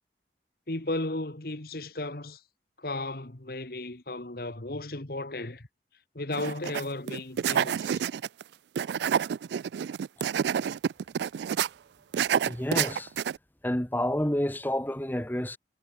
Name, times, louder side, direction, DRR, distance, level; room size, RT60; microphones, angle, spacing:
voice 1, 0.7-2.4 2.8-5.7 6.1-8.0, left 2 dB, 55° left, 1.7 m, -35 dB
sound 1, 6.3-6.8 7.1-8.4 8.8-11.7 12.1-13.4, right 8 dB, 70° right, 0.3 m, -28 dB
voice 2, 12.5-13.1 13.6-15.6, left 1 dB, 10° left, 1.0 m, -29 dB
head